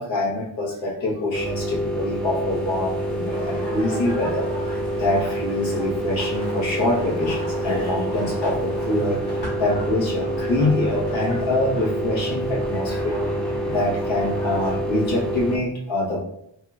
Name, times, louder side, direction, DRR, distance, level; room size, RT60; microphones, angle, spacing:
voice 1, 0.0-4.5 5.0-13.3 13.7-16.2, left 2 dB, 90° left, -4 dB, 0.8 m, -25 dB
sound 1, 1.3-15.6, right 1 dB, ahead, 0.3 m, -27 dB
sound 2, 2.5-9.1, right 3 dB, 30° left, 0.8 m, -43 dB
sound 3, 3.0-14.8, equal, 60° left, 1.2 m, -38 dB
2.9 x 2.5 x 2.2 m, 0.76 s
cardioid pair, 60°, 45 cm